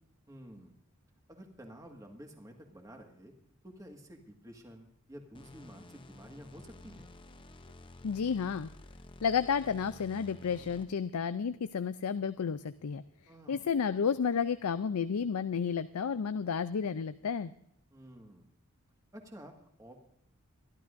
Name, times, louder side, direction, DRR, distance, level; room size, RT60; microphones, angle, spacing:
voice 1, 0.3-0.8 1.3-3.3 3.6-7.1 13.3-13.7 17.9-18.5 19.1-20.0, equal, 15° right, 3 dB, 1.7 m, -51 dB
sound 1, 5.3-11.1, left 2 dB, 20° left, 0.6 m, -52 dB
voice 2, 8.0-8.7 9.2-13.0 13.5-17.5, left 6 dB, 85° left, 12 dB, 0.5 m, -31 dB
24.5 x 12.0 x 2.6 m, 0.74 s
head